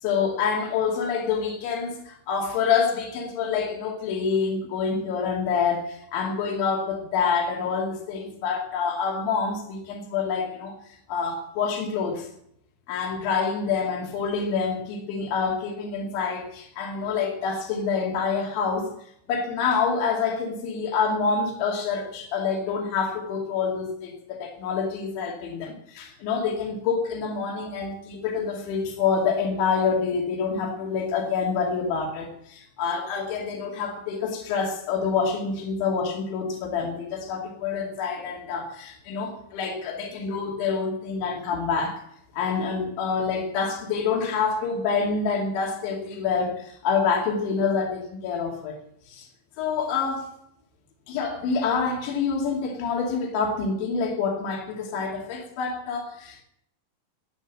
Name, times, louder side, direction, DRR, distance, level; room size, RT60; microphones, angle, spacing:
voice 1, 0.0-12.3 12.9-18.9 19.3-42.0 42.3-48.8 49.1-49.3 49.6-50.3 51.1-56.4, left 5 dB, 70° left, 0 dB, 4.8 m, -27 dB
16.0 x 9.2 x 7.5 m, 0.72 s
omnidirectional pair, 5.5 m